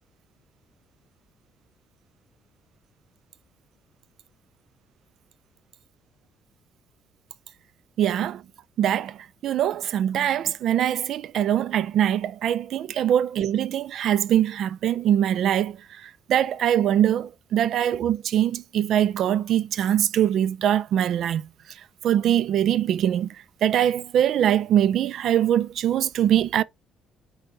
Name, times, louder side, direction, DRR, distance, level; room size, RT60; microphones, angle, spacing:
voice 1, 8.0-8.4 8.8-9.2 9.4-15.8 16.3-21.4 22.0-23.3 23.6-26.6, right 10 dB, 60° right, 0.3 m, -22 dB
5.2 x 2.8 x 3.4 m
cardioid pair, 135°, 0 cm